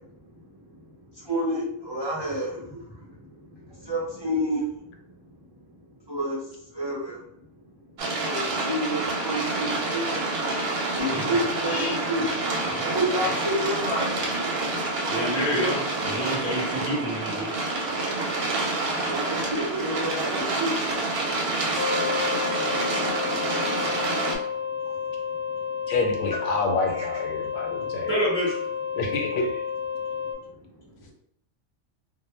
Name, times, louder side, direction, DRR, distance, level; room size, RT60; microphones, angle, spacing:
voice 1, 1.1-3.2 3.7-5.0 6.1-6.4 6.7-7.2 8.2-10.2 10.9-12.3 12.6-14.1 19.1-21.0 26.3-26.4 27.0-27.1, equal, 45° right, -7 dB, 0.3 m, -29 dB
sound 1, 8.0-24.4, right 2 dB, 60° right, 0.7 m, -28 dB
voice 2, 15.1-17.6 28.1-28.6, equal, 10° right, -8 dB, 0.9 m, -27 dB
sound 2, 21.7-30.3, left 6 dB, 55° left, 0.7 m, -31 dB
voice 3, 25.9-28.1 29.0-29.5, left 3 dB, 80° left, 1 dB, 0.9 m, -28 dB
2.1 x 2.0 x 3.1 m, 0.72 s
omnidirectional pair, 1.3 m